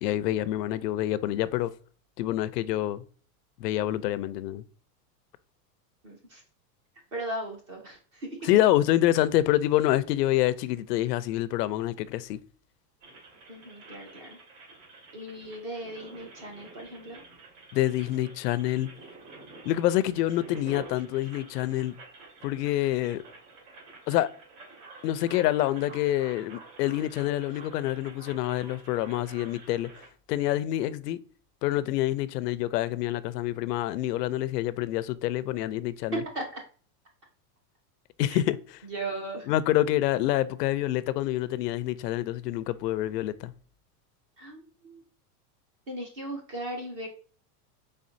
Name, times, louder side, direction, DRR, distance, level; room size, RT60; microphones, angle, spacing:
voice 1, 0.0-1.7 2.2-3.0 3.6-4.6 8.5-12.4 17.7-18.9 19.7-21.9 22.4-23.2 24.1-24.3 25.0-29.9 30.3-31.2 31.6-36.2 38.2-38.6 39.5-43.5, left 14 dB, 90° left, 0.5 m, -27 dB
voice 2, 6.0-6.4 7.1-8.4 13.5-14.4 15.1-17.2 36.3-36.6 38.3-38.4 38.8-39.5 44.4-45.0 45.9-47.1, right 1 dB, 25° right, 0.3 m, -37 dB
sound 1, 13.0-30.1, right 3 dB, 55° right, 1.9 m, -49 dB
4.2 x 3.5 x 2.6 m
supercardioid pair, 160°, 46 cm